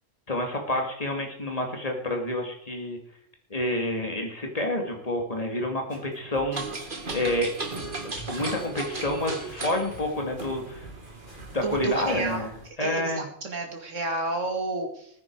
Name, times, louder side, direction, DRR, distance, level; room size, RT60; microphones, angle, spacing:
voice 1, 0.3-3.0 3.5-6.6 7.1-7.5 8.3-10.9 11.5-12.5 12.8-13.3, left 1 dB, 30° left, 2 dB, 2.7 m, -28 dB
sound 1, 5.9-11.9, right 2 dB, 50° left, 5.8 m, -48 dB
sound 2, 6.5-12.7, right 3 dB, 40° right, 2.0 m, -36 dB
voice 2, 11.6-12.5 12.8-15.2, right 3 dB, 70° right, 3 dB, 2.9 m, -31 dB
19.5 x 9.6 x 4.8 m, 0.69 s
omnidirectional pair, 1.3 m